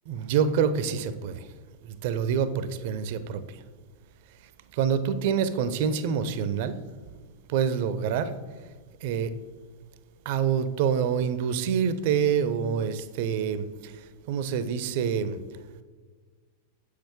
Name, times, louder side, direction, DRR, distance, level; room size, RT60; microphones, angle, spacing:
voice 1, 0.1-1.5 2.0-3.6 4.7-6.8 7.5-8.3 9.0-9.3 10.3-13.9 14.3-15.4, right 7 dB, 50° right, 0.5 m, -26 dB
7.5 x 6.5 x 3.5 m
figure-of-eight pair, 90°, 0 cm